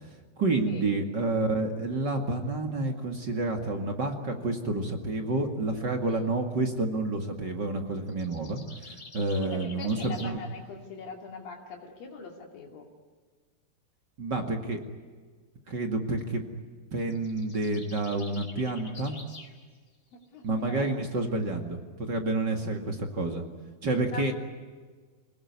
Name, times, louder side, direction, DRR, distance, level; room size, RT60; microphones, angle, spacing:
voice 1, 0.4-8.6 8.9-10.4 14.2-14.8 15.7-16.4 16.9-19.2 20.4-23.4 23.8-24.3, right 2 dB, 35° right, 4 dB, 2.3 m, -29 dB
sound 1, 8.1-10.4 17.0-19.5, left 3 dB, 25° left, 3.6 m, -47 dB
voice 2, 9.4-12.9 20.1-20.9 24.1-24.3, left 4 dB, 80° left, 0 dB, 4.4 m, -42 dB
27.0 x 19.0 x 9.6 m, 1.5 s
omnidirectional pair, 3.9 m